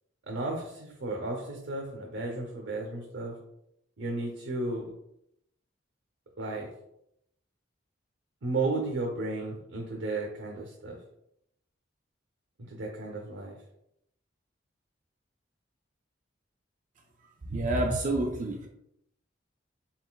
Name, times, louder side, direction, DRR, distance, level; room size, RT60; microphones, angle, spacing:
voice 1, 0.3-3.3 4.0-4.9 6.4-6.7 8.4-10.9 12.7-13.6, right 2 dB, 70° right, 0 dB, 0.7 m, -33 dB
voice 2, 17.5-18.7, right 2 dB, 40° right, 1 dB, 0.4 m, -28 dB
4.2 x 3.8 x 2.3 m, 0.79 s
head